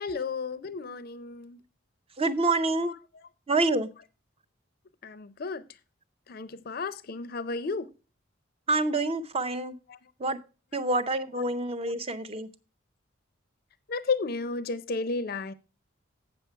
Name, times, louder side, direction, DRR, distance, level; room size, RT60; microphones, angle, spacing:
voice 1, 0.0-1.6 5.0-5.6 6.3-7.9 11.8-11.9 13.9-15.5, left 4 dB, 45° left, 0.4 m, -33 dB
voice 2, 2.2-2.9 3.5-3.9 8.7-9.8 10.2-10.4 10.7-12.5, right 2 dB, 30° right, 0.5 m, -27 dB
8.0 x 6.9 x 4.5 m
head